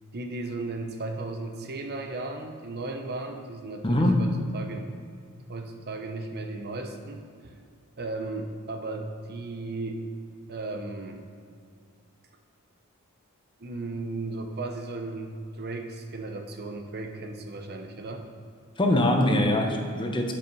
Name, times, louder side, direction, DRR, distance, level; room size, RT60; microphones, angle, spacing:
voice 1, 0.1-4.9 5.5-7.5 8.0-10.0 10.5-11.2 13.6-18.3, right 2 dB, 45° right, 5 dB, 0.8 m, -35 dB
voice 2, 3.8-4.2 18.8-20.3, left 1 dB, 20° left, 3 dB, 0.8 m, -23 dB
10.5 x 5.6 x 5.3 m, 2.2 s
head